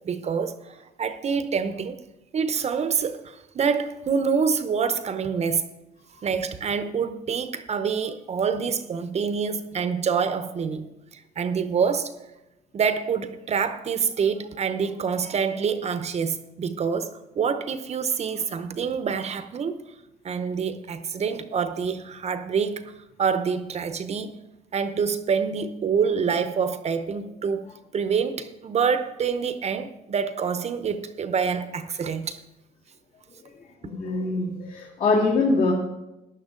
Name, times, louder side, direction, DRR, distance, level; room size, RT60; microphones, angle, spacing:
voice 1, 0.0-2.0 2.3-5.7 6.2-10.9 11.1-12.1 12.7-19.8 20.2-22.8 23.2-24.4 24.7-27.7 27.9-32.4, right 6 dB, 40° right, 0.8 m, -26 dB
voice 2, 33.8-35.7, left 3 dB, 60° left, 2.9 m, -23 dB
14.5 x 10.5 x 3.8 m
cardioid pair, 110°, 17 cm